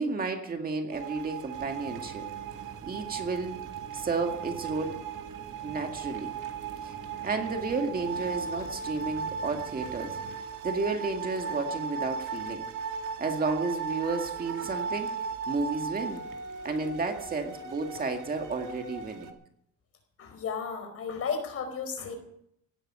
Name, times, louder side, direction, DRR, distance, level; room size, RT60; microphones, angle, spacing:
voice 1, 0.0-2.3 2.9-3.6 3.9-5.0 5.6-6.3 6.8-6.9 7.2-10.2 10.6-12.7 13.2-15.1 15.5-16.2 16.6-19.3, right 3 dB, 30° right, 4 dB, 2.0 m, -32 dB
sound 1, 0.9-19.3, right 5 dB, 85° right, 2.4 m, -37 dB
sound 2, 1.5-10.4, right 6 dB, 55° right, 1.9 m, -48 dB
voice 2, 20.2-22.1, left 6 dB, 50° left, 6 dB, 4.8 m, -34 dB
17.5 x 13.5 x 5.6 m, 0.71 s
cardioid pair, 170°, 30 cm